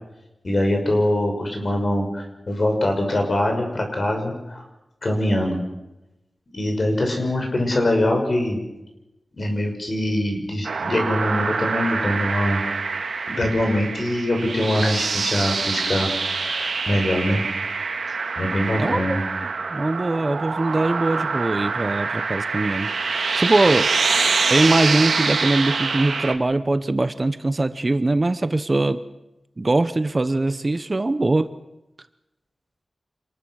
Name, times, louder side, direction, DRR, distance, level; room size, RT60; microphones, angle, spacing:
voice 1, 0.4-4.6 5.0-5.6 6.5-8.6 9.3-12.6 13.3-17.4 18.4-19.2, left 1 dB, 45° left, 3 dB, 6.1 m, -23 dB
sound 1, 10.6-26.3, right 4 dB, 85° right, 2.2 m, -25 dB
voice 2, 19.7-23.9 24.5-29.0 29.6-31.5, right 2 dB, 30° right, 12 dB, 0.9 m, -22 dB
27.5 x 20.5 x 6.5 m, 0.95 s
wide cardioid pair, 110°, 0 cm